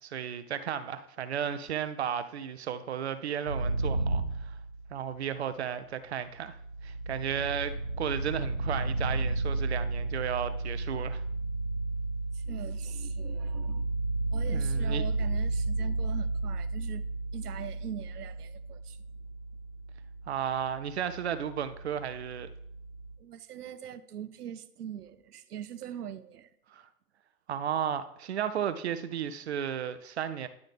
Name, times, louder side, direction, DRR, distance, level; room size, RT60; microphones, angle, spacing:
voice 1, 0.0-4.6 4.9-6.6 6.8-11.2 14.5-15.0 20.3-22.5 26.7-26.8 27.5-30.5, right 8 dB, 50° right, 0.5 m, -34 dB
sound 1, 3.5-5.2 6.2-23.1, right 2 dB, 25° left, 0.3 m, -33 dB
voice 2, 12.3-13.9 14.3-17.0 17.3-19.0 23.2-26.5, right 9 dB, 80° right, 0.7 m, -42 dB
10.5 x 3.9 x 3.3 m
hypercardioid pair, 145°, 46 cm